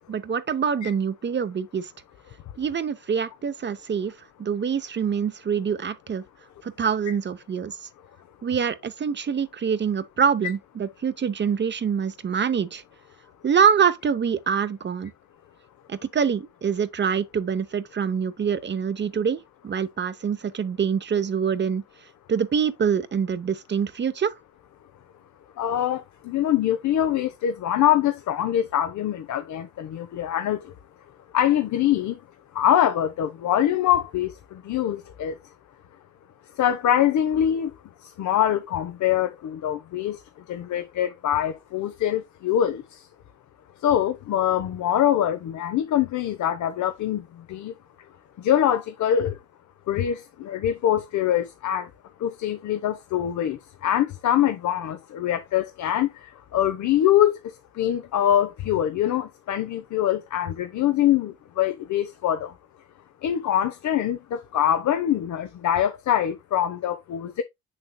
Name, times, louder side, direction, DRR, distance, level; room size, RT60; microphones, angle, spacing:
voice 1, 0.1-1.9 2.6-6.2 6.6-7.9 8.4-12.8 13.4-15.1 15.9-21.8 22.3-24.3, right 7 dB, 35° right, 0.8 m, -25 dB
voice 2, 25.6-30.7 31.3-32.2 32.5-35.4 36.5-37.7 38.0-40.2 40.5-43.1 43.8-47.7 48.4-49.4 49.9-51.9 52.2-62.5 63.2-67.4, left 11 dB, 70° left, 0.9 m, -24 dB
7.2 x 6.6 x 2.2 m
cardioid pair, 90°, 30 cm